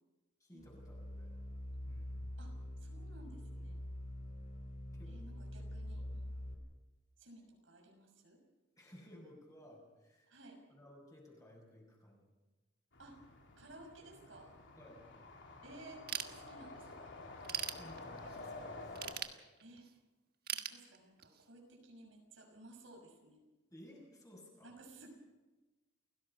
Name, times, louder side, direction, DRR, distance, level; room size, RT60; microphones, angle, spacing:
voice 1, 0.4-1.3 1.9-2.3 4.9-5.1 5.9-6.1 8.8-10.3 10.7-12.3 14.8-15.0 17.8-19.0 23.7-24.7, equal, 20° left, -1 dB, 6.4 m, -57 dB
sound 1, 0.6-6.5, left 1 dB, 35° left, 3.2 m, -45 dB
voice 2, 2.4-3.8 5.1-6.3 7.2-8.4 10.3-10.6 13.0-13.2 13.6-14.5 15.6-17.1 19.6-19.9 20.5-23.4 24.6-25.2, right 2 dB, 85° right, 2 dB, 6.4 m, -56 dB
sound 2, 12.9-19.1, left 2 dB, 70° left, 3.8 m, -50 dB
Ratchet pawl / Tools, 16.1-16.9 17.3-18.4 19.0-19.9 20.5-21.4, right 10 dB, 55° right, 1.4 m, -41 dB
29.0 x 17.5 x 5.5 m, 1.2 s
head